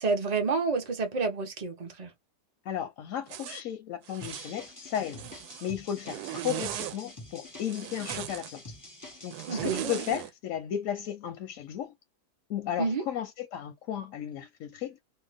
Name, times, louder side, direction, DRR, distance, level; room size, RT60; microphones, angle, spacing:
voice 1, 0.0-2.1 9.5-10.0 12.8-13.0, right 4 dB, 45° right, 0.5 m, -29 dB
voice 2, 2.7-5.2 5.6-8.8 9.2-11.9 12.5-15.0, left 10 dB, 65° left, 0.8 m, -34 dB
Zipper (clothing), 3.3-3.6 4.1-4.5 5.0-5.7 6.0-7.0 7.6-8.5 9.3-10.3, right 13 dB, 75° right, 1.0 m, -37 dB
sound 1, 4.2-10.1, left 2 dB, 20° left, 0.5 m, -46 dB
2.8 x 2.2 x 3.3 m
omnidirectional pair, 1.8 m